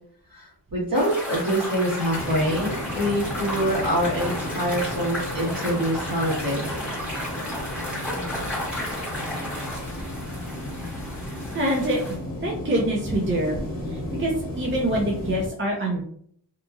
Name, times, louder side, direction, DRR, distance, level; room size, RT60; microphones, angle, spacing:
voice 1, 0.3-6.7, equal, 55° right, -5 dB, 1.4 m, -25 dB
sound 1, 0.9-12.1, left 1 dB, 5° right, 1.1 m, -33 dB
sound 2, 2.1-15.5, left 1 dB, 50° left, 1.0 m, -34 dB
voice 2, 11.5-12.2 12.4-13.6 13.9-16.0, right 1 dB, 30° right, -1 dB, 0.5 m, -25 dB
2.9 x 2.4 x 2.3 m, 0.62 s
wide cardioid pair, 65°, 42 cm